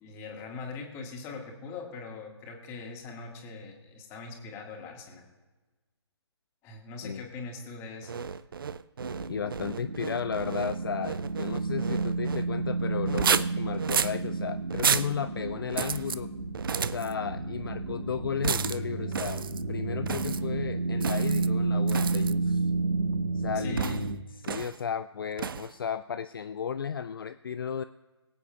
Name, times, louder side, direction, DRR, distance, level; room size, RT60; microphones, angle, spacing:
voice 1, 0.0-5.2 6.6-8.2 23.6-24.0, left 4 dB, 20° left, 1 dB, 1.8 m, -41 dB
sound 1, 8.0-12.5 13.1-14.2 14.7-15.1 15.7-16.2 16.5-17.1 18.4-18.8 19.1-19.6 20.1-20.4 21.0-21.5 21.9-22.3 23.8-24.1 24.4-24.8 25.4-25.7, right 7 dB, 50° right, 0.5 m, -31 dB
sound 2, 9.0-24.2, right 3 dB, 80° right, 1.2 m, -31 dB
voice 2, 9.3-16.3 16.9-22.7 23.3-23.8 24.4-27.8, left 7 dB, 55° left, 10 dB, 0.4 m, -34 dB
23.5 x 8.2 x 2.4 m, 1.2 s
figure-of-eight pair, 140°, 15 cm